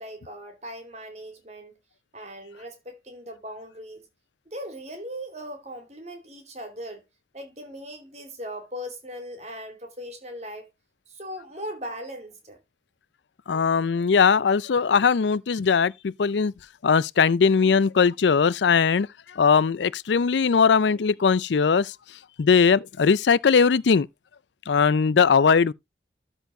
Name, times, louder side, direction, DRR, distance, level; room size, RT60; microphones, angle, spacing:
voice 1, 0.0-1.8 2.1-4.1 4.5-7.0 7.3-10.7 11.1-12.6, equal, 40° right, 2.7 m, -39 dB
voice 2, 13.5-16.5 16.8-21.9 22.4-24.1 24.7-25.7, left 5 dB, 80° left, 0.4 m, -20 dB
13.0 x 4.4 x 3.8 m
head